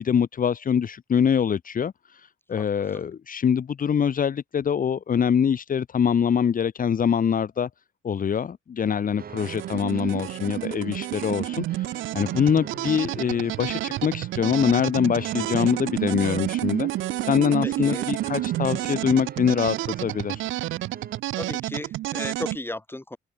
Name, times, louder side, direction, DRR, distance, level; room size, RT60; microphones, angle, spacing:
voice 1, 0.0-7.7 8.0-16.9 17.2-20.4, left 7 dB, 45° left, 1.3 m, -24 dB
sound 1, 9.2-21.2, right 7 dB, 50° right, 3.0 m, -42 dB
sound 2, 9.3-22.6, right 15 dB, 80° right, 0.8 m, -30 dB
voice 2, 17.6-18.1 21.3-23.2, left 1 dB, 10° left, 5.1 m, -35 dB
open air
cardioid pair, 90°, 20 cm